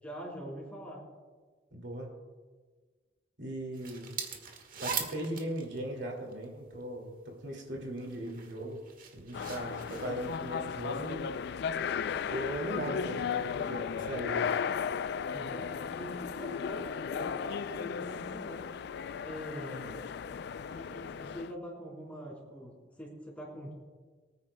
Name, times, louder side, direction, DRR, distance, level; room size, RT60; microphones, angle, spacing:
voice 1, 0.0-1.0 15.3-18.6 19.2-20.0 20.7-23.7, equal, 10° left, -4 dB, 3.9 m, -44 dB
voice 2, 1.7-2.1 3.4-4.1 4.8-8.8 9.2-11.4 12.3-14.6, right 1 dB, 75° right, 0 dB, 2.3 m, -38 dB
sound 1, 3.7-6.8 7.5-11.1, right 6 dB, 50° right, 1.5 m, -41 dB
sound 2, 9.3-21.5, left 7 dB, 60° left, 0.3 m, -35 dB
24.0 x 9.6 x 2.2 m, 1.4 s
head